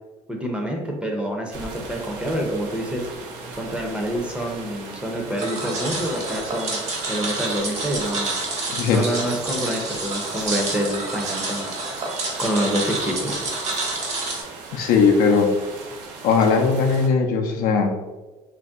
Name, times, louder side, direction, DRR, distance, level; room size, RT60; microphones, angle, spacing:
voice 1, 0.3-3.1 3.5-6.8 7.1-8.3 8.9-11.7 12.4-13.4, equal, 5° right, 0 dB, 0.6 m, -27 dB
sound 1, 1.5-17.1, right 3 dB, 85° right, 0.6 m, -39 dB
sound 2, 5.4-14.4, right 2 dB, 45° right, 0.9 m, -29 dB
voice 2, 8.7-9.0 14.7-15.5 16.2-17.9, left 5 dB, 70° left, 3 dB, 0.5 m, -18 dB
2.6 x 2.1 x 3.5 m, 1.2 s
supercardioid pair, 95°, 15 cm